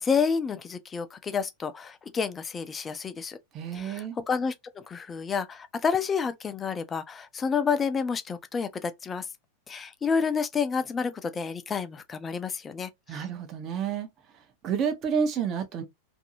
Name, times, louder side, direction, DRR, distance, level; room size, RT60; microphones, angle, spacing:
voice 1, 0.0-3.4 3.7-4.5 4.9-9.3 9.7-13.2, left 5 dB, 20° left, 0.4 m, -29 dB
voice 2, 3.5-4.2 13.1-14.1 14.6-15.8, right 7 dB, 35° right, 0.8 m, -29 dB
2.7 x 2.6 x 2.6 m
figure-of-eight pair, 90°, 0 cm